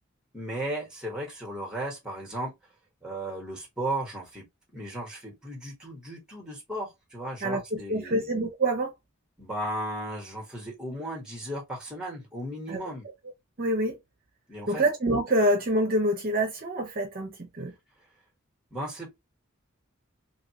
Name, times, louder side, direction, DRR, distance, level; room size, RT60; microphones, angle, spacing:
voice 1, 0.3-2.5 3.0-4.4 4.7-8.3 9.4-13.1 14.5-14.8 18.7-19.1, right 1 dB, 5° right, 1.4 m, -35 dB
voice 2, 7.4-8.9 12.7-12.8 13.6-14.0 14.7-17.7, right 1 dB, 45° right, 0.7 m, -26 dB
2.8 x 2.7 x 2.9 m
head